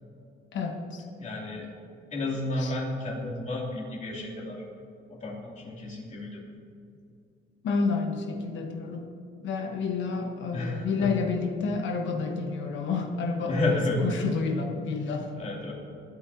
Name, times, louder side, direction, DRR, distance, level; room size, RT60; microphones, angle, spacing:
voice 1, 0.5-1.0 2.6-2.7 7.6-9.0 9.4-13.8 14.0-15.3, left 4 dB, 75° left, 4 dB, 1.2 m, -29 dB
voice 2, 1.2-1.7 2.1-4.6 5.1-6.4 10.5-11.1 13.4-14.0 15.3-15.7, left 2 dB, 40° left, -3 dB, 2.8 m, -31 dB
20.5 x 9.3 x 2.8 m, 2.6 s
cardioid pair, 120°, 20 cm